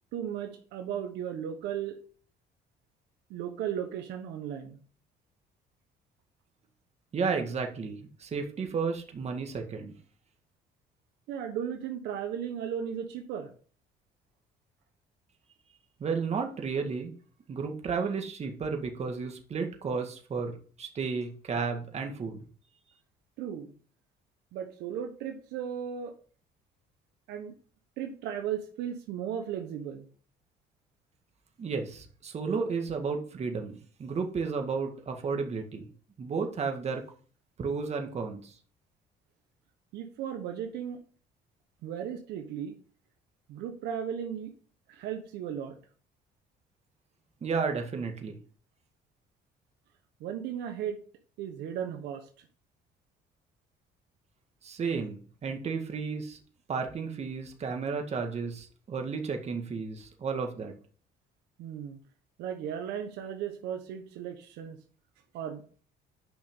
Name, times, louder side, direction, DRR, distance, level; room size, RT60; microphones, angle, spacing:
voice 1, 0.1-2.0 3.3-4.8 11.3-13.5 23.4-23.7 24.5-26.1 27.3-27.6 28.0-30.1 39.9-41.0 41.8-42.8 43.5-44.5 44.9-45.8 50.2-51.0 51.4-52.5 61.6-62.0 62.4-64.8 65.3-65.6, right 9 dB, 85° right, 5 dB, 1.3 m, -36 dB
voice 2, 7.1-10.0 16.0-17.1 17.5-22.4 31.6-35.9 36.2-37.0 37.6-38.5 47.4-48.4 54.6-56.4 56.7-60.7, right 5 dB, 40° right, 3 dB, 1.8 m, -33 dB
10.0 x 5.8 x 3.8 m, 0.43 s
cardioid pair, 110°, 17 cm